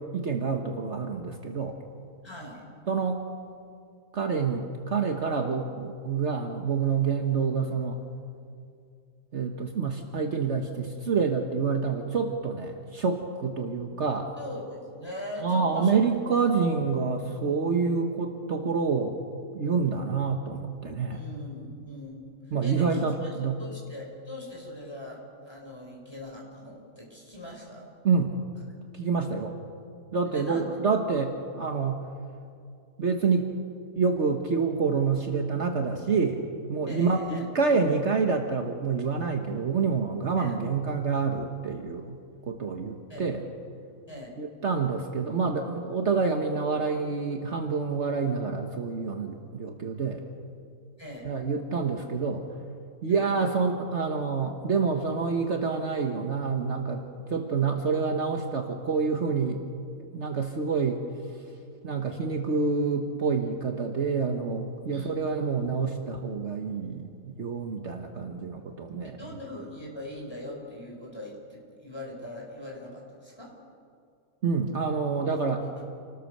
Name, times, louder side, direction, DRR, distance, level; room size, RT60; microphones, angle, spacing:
voice 1, 0.0-1.7 2.9-3.2 4.1-8.0 9.3-14.3 15.4-19.2 19.5-21.2 22.5-23.6 28.0-28.4 29.0-29.6 30.1-32.0 33.0-33.5 34.0-36.4 36.7-42.2 42.5-43.4 44.4-50.2 51.2-52.4 53.0-57.0 57.3-59.6 60.1-61.0 61.8-69.2 74.4-75.6, right 5 dB, 55° right, 3 dB, 1.5 m, -27 dB
voice 2, 2.2-2.6 14.4-16.0 21.1-22.1 22.5-27.9 30.3-30.6 36.9-37.5 40.4-40.7 43.1-43.3 44.1-44.3 51.0-51.3 53.1-53.2 64.9-65.7 69.2-73.5 75.8-75.9, left 1 dB, 15° left, -2 dB, 5.8 m, -41 dB
28.5 x 19.0 x 6.7 m, 2.4 s
omnidirectional pair, 1.5 m